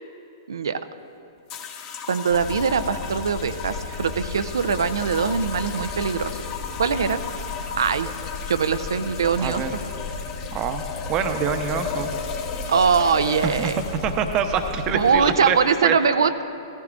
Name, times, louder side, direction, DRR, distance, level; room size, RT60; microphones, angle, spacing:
voice 1, 0.5-0.8 2.1-6.4 6.8-7.2 7.8-8.1 8.5-9.6 12.7-13.8 14.9-16.4, right 6 dB, 70° right, 12 dB, 0.5 m, -22 dB
sound 1, 1.5-15.8, left 5 dB, 35° left, 1.2 m, -35 dB
sound 2, 2.3-15.2, left 4 dB, 70° left, 1.4 m, -36 dB
voice 2, 9.4-9.7 10.5-10.8 11.1-12.1 13.4-15.6 15.8-15.9, right 7 dB, 30° right, 7 dB, 0.8 m, -25 dB
15.5 x 15.0 x 2.5 m, 2.6 s
figure-of-eight pair, 115°, 2 cm